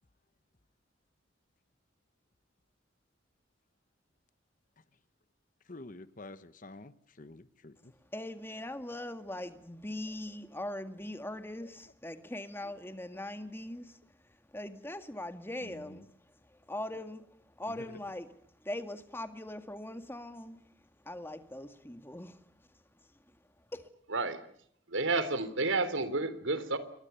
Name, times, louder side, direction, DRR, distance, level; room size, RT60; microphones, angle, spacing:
voice 1, 5.7-7.9 11.6-11.7 13.1-13.2 15.6-16.0 17.8-17.9, left 2 dB, 45° left, 1.1 m, -49 dB
voice 2, 8.1-14.0 14.2-16.1 16.5-20.6 21.0-22.5 23.3-23.4 23.7-23.9, left 1 dB, 10° left, 2.0 m, -41 dB
voice 3, 24.1-24.5 24.9-26.8, right 3 dB, 85° right, 3.4 m, -30 dB
28.5 x 23.5 x 7.0 m
head